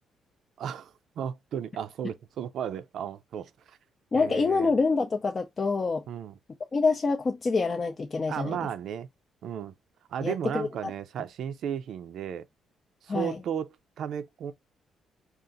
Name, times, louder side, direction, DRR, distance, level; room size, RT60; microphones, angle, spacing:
voice 1, 0.6-3.5 4.1-4.7 6.1-6.3 8.3-9.1 9.4-9.7 10.1-12.5 13.0-14.5, right 9 dB, 70° right, 0.5 m, -34 dB
voice 2, 4.1-6.0 6.7-8.6 10.2-10.9 13.1-13.4, left 4 dB, 35° left, 0.5 m, -26 dB
4.0 x 2.5 x 3.7 m
cardioid pair, 90°, 0 cm